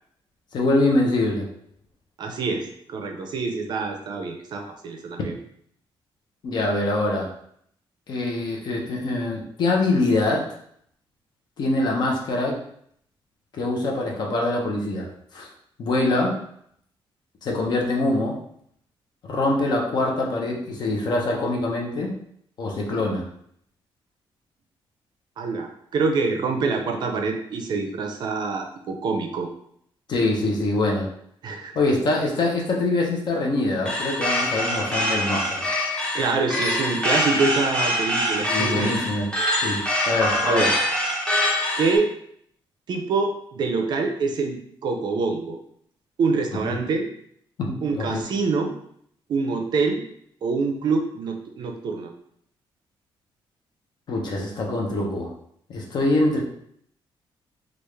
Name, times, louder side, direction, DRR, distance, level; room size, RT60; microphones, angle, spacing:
voice 1, 0.5-1.5 6.4-7.3 8.1-10.5 11.6-12.6 13.5-15.1 15.3-15.5 15.8-16.4 17.4-18.4 19.3-22.1 22.6-23.2 30.1-31.1 31.7-35.7 38.5-39.3 39.6-40.7 47.7-48.3 54.1-55.3 55.7-56.4, left 2 dB, 50° left, -1 dB, 0.7 m, -24 dB
voice 2, 2.2-5.4 25.4-29.5 31.4-31.8 36.1-39.0 40.4-40.7 41.8-42.1 42.9-45.6 46.2-47.1 47.8-48.7 49.3-50.0 50.4-52.1, right 4 dB, 50° right, 3 dB, 0.5 m, -25 dB
sound 1, 33.9-42.0, left 1 dB, 10° left, 0.7 m, -24 dB
3.4 x 2.4 x 3.2 m, 0.67 s
cardioid pair, 175°, 9 cm